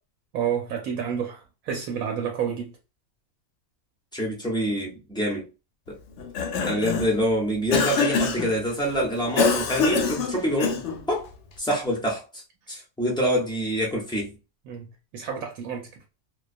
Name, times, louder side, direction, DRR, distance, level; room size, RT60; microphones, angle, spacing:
voice 1, 0.3-2.7 14.7-15.9, right 8 dB, 75° right, 1.0 m, -30 dB
voice 2, 4.1-5.5 5.9-6.0 6.6-11.3 11.6-12.4 12.7-14.3, equal, 5° left, 0.3 m, -26 dB
Cough, 6.2-7.2 7.7-8.5 9.4-11.0, left 5 dB, 65° left, 0.8 m, -24 dB
2.3 x 2.2 x 2.5 m
omnidirectional pair, 1.5 m